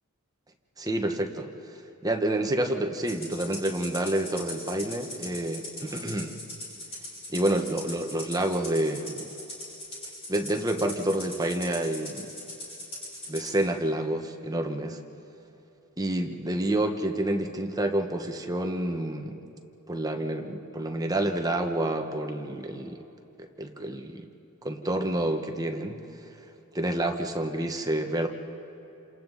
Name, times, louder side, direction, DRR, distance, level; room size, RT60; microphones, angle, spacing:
voice 1, 0.8-1.5 2.0-6.4 7.3-9.3 10.3-12.3 13.3-15.0 16.0-19.4 19.9-23.0 23.6-24.3 24.6-26.0 26.7-28.3, right 1 dB, 15° right, 4 dB, 1.2 m, -28 dB
Rattle (instrument), 3.1-13.5, left 1 dB, 25° left, 7.0 m, -40 dB
29.0 x 27.5 x 4.1 m, 3.0 s
head